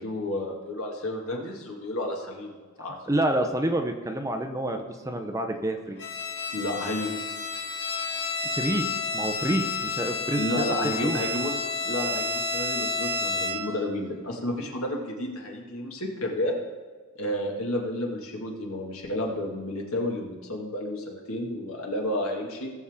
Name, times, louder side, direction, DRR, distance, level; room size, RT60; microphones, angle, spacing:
voice 1, 0.0-3.0 6.5-7.2 10.3-11.5 11.8-16.6 17.2-22.7, left 1 dB, 70° left, 0 dB, 2.0 m, -31 dB
voice 2, 3.1-6.0 8.5-8.9 9.1-10.5 11.0-11.2, right 1 dB, 15° right, 5 dB, 0.7 m, -28 dB
Bowed string instrument, 6.0-13.8, left 3 dB, 50° left, 2.5 m, -30 dB
18.0 x 7.2 x 3.7 m, 1.5 s
head